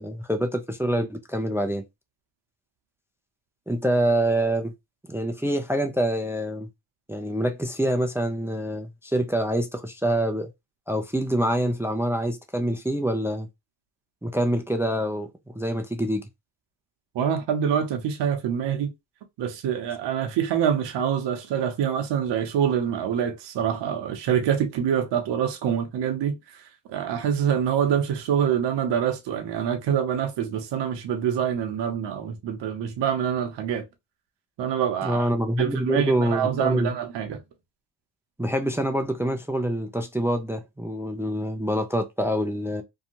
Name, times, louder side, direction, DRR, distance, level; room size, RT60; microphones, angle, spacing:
voice 1, 0.0-1.8 3.7-4.7 5.1-6.7 7.1-10.5 10.9-13.5 14.2-15.3 15.5-16.2 35.0-36.9 38.4-42.8, right 1 dB, 5° right, 0.3 m, -26 dB
voice 2, 17.1-18.9 19.4-33.9 34.6-35.3 35.6-37.4, right 8 dB, 65° right, 0.8 m, -25 dB
2.7 x 2.3 x 2.8 m
cardioid pair, 85°, 45 cm